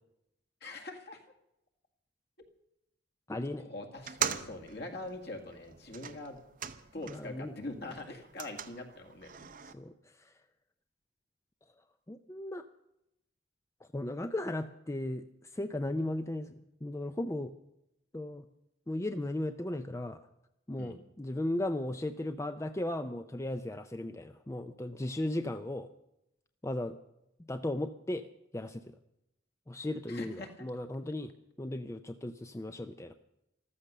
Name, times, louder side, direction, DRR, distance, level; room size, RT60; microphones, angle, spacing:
voice 1, 0.6-1.2 3.6-6.4 6.9-9.3 20.8-21.0 30.1-30.7, left 2 dB, 55° left, 4 dB, 2.0 m, -43 dB
voice 2, 3.3-3.7 7.1-7.5 9.6-10.3 12.1-12.6 13.9-16.5 16.8-17.5 18.1-18.5 18.9-20.2 20.7-25.9 26.6-27.0 27.5-28.3 28.5-28.9 29.7-31.3 31.6-33.1, left 1 dB, 15° left, 9 dB, 0.4 m, -36 dB
sound 1, 4.0-7.4 7.7-9.7, right 8 dB, 45° right, 0.8 m, -40 dB
14.0 x 13.5 x 6.6 m, 0.85 s
head